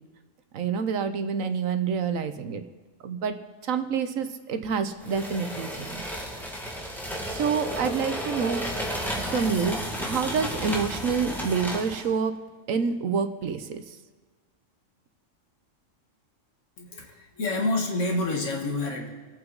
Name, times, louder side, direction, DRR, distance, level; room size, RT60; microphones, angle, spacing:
voice 1, 0.5-2.6 3.0-3.4 3.6-6.0 7.3-8.6 9.3-12.4 12.7-13.8, right 6 dB, 85° right, 9 dB, 1.3 m, -27 dB
sound 1, 5.0-12.1, equal, ahead, 1.8 m, -33 dB
voice 2, 16.8-19.1, left 2 dB, 70° left, 1 dB, 1.8 m, -28 dB
25.5 x 8.8 x 3.9 m, 1.4 s
omnidirectional pair, 1.3 m